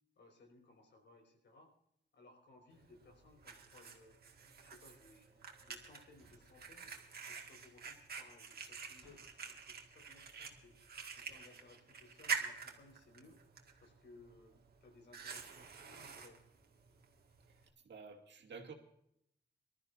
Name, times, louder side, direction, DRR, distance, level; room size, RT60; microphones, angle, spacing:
voice 1, 0.2-1.7 2.1-4.2 4.6-7.0 7.3-10.8 11.1-13.4 13.8-16.4, left 3 dB, 80° left, 3 dB, 5.1 m, -62 dB
Fire, 2.7-17.7, right 6 dB, 60° right, 2.0 m, -47 dB
sound 1, 6.2-6.7 9.0-9.2, equal, ahead, 7.1 m, -65 dB
voice 2, 17.8-18.7, right 5 dB, 75° right, 3 dB, 2.4 m, -51 dB
25.0 x 13.0 x 2.7 m, 0.71 s
wide cardioid pair, 170°, 18 cm